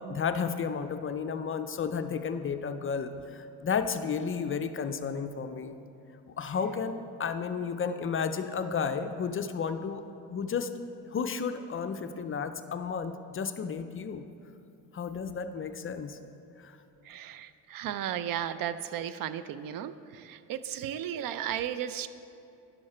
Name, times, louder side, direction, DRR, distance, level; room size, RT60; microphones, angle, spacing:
voice 1, 0.0-5.8 6.3-10.0 10.3-10.7 11.1-14.2 14.9-16.2 16.6-16.8, left 6 dB, 30° left, 9 dB, 0.5 m, -32 dB
voice 2, 17.1-22.1, right 10 dB, 50° right, 13 dB, 0.5 m, -35 dB
10.5 x 6.4 x 4.3 m, 2.7 s
supercardioid pair, 70°, 44 cm